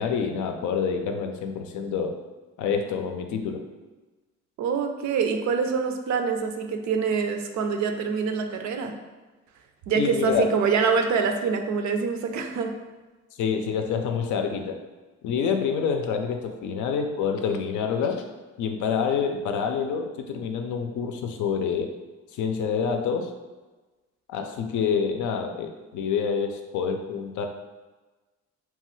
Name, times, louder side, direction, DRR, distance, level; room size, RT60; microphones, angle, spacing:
voice 1, 0.0-2.2 2.6-3.6 10.0-10.5 13.4-14.8 15.2-18.3 18.6-21.9 22.3-23.3 24.3-27.5, left 6 dB, 75° left, 5 dB, 0.5 m, -27 dB
voice 2, 4.6-8.9 9.9-12.7, right 5 dB, 70° right, 5 dB, 0.5 m, -25 dB
3.0 x 2.3 x 3.0 m, 1.2 s
cardioid pair, 90°, 30 cm